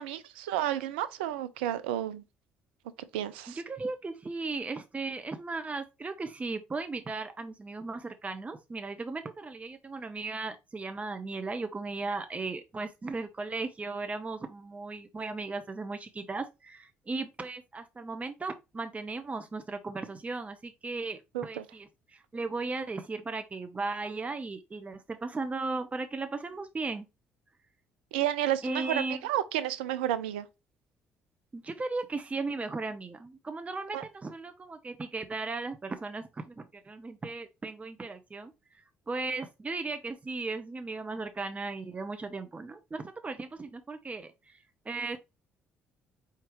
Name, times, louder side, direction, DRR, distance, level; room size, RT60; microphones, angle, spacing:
voice 1, 0.0-2.2 3.1-3.6 21.3-21.6 28.1-30.5 33.9-34.0, right 12 dB, 80° right, 0.4 m, -31 dB
voice 2, 3.5-27.1 28.6-29.2 31.5-45.2, right 3 dB, 25° right, 0.8 m, -36 dB
4.5 x 3.6 x 3.1 m
hypercardioid pair, 55°, 6 cm